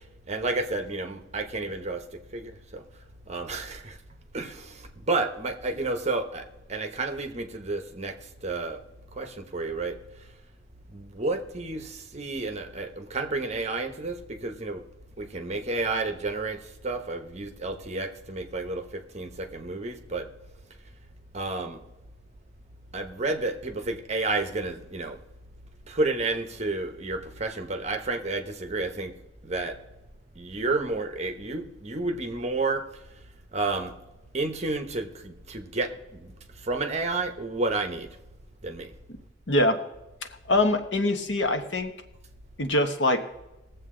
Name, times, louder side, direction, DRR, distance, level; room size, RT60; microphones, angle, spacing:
voice 1, 0.3-2.0 2.3-2.8 3.3-4.0 4.3-8.1 8.4-8.8 9.2-10.0 10.9-14.8 15.2-16.6 16.8-20.3 21.3-21.8 22.9-25.2 25.9-29.1 29.4-29.8 30.4-32.8 33.5-33.9 34.3-36.3 36.7-38.1 38.6-38.9, right 3 dB, 35° right, 6 dB, 1.0 m, -31 dB
voice 2, 39.5-39.8 40.5-41.9 42.6-43.2, left 1 dB, 65° left, 6 dB, 1.1 m, -23 dB
20.0 x 7.5 x 3.8 m, 0.98 s
head